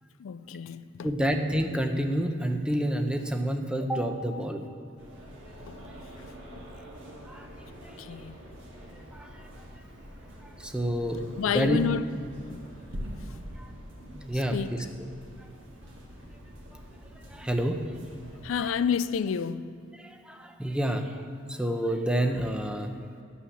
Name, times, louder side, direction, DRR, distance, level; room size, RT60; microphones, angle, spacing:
voice 1, 0.2-1.1 5.6-6.7 8.0-8.4 11.4-12.2 12.5-12.6 14.3-14.8 18.4-19.7, left 7 dB, 85° left, 0.4 m, -31 dB
voice 2, 1.0-4.6 7.3-7.5 7.8-7.9 8.9-9.3 10.6-11.2 11.5-11.8 13.6-13.7 14.1-14.8 16.7-16.8 17.3-17.8 20.0-22.9, equal, 5° right, 0.7 m, -29 dB
sound 1, 5.0-18.6, equal, 70° right, 2.1 m, -45 dB
11.0 x 5.7 x 7.2 m
head